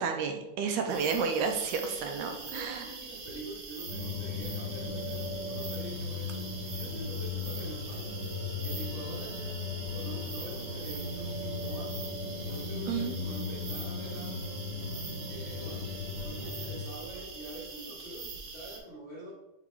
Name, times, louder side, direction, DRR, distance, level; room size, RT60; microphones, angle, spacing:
voice 1, 0.0-2.8 12.9-13.3, right 5 dB, 80° right, 4 dB, 2.0 m, -31 dB
sound 1, 0.9-18.8, right 4 dB, 65° right, 2.0 m, -43 dB
voice 2, 2.3-8.2 8.6-14.6 15.2-19.3, right 1 dB, 30° left, -8 dB, 1.2 m, -46 dB
sound 2, 3.9-16.8, left 3 dB, 85° left, 0.5 m, -37 dB
sound 3, 10.1-10.4 10.9-11.2 11.7-11.9 12.5-12.7 13.2-13.5 14.0-14.3 14.8-15.0 15.6-17.4, left 1 dB, 40° right, 1.4 m, -52 dB
6.0 x 4.4 x 4.6 m, 0.93 s
omnidirectional pair, 3.6 m